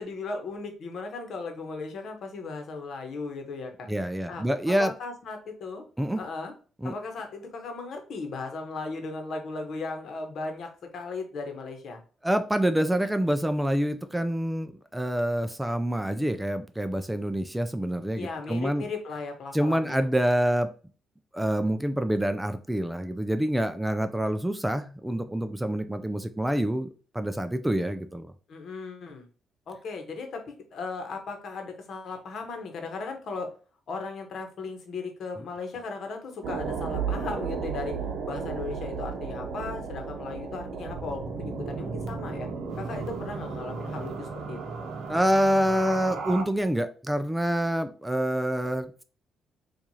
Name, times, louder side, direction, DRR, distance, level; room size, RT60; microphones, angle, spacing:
voice 1, 0.0-3.9 4.3-4.4 4.8-5.8 6.2-6.5 6.8-12.0 18.1-20.1 28.5-29.3 29.7-33.5 33.9-38.0 38.2-42.5 42.8-44.6, left 4 dB, 60° left, 4 dB, 1.0 m, -36 dB
voice 2, 3.9-4.9 6.0-6.2 6.8-6.9 12.2-18.9 19.5-20.7 21.3-26.9 27.1-28.3 45.1-49.0, right 1 dB, 5° right, 9 dB, 0.3 m, -26 dB
sound 1, 36.4-46.4, right 5 dB, 70° right, 0.7 m, -34 dB
4.5 x 2.4 x 2.8 m, 0.38 s
cardioid pair, 90°, 0 cm